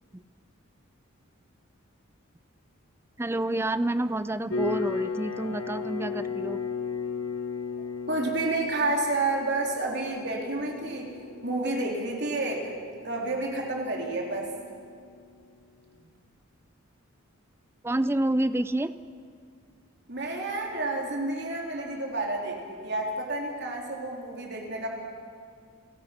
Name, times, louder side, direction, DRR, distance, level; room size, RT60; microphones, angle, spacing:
voice 1, 3.2-6.6 17.8-18.9, right 1 dB, 10° right, 13 dB, 0.4 m, -28 dB
sound 1, 4.5-15.6, left 5 dB, 65° left, 1.8 m, -36 dB
voice 2, 8.1-11.1 11.4-12.7 13.0-14.5 20.1-24.9, right 2 dB, 50° right, 0 dB, 3.6 m, -30 dB
29.5 x 17.0 x 5.8 m, 2.2 s
head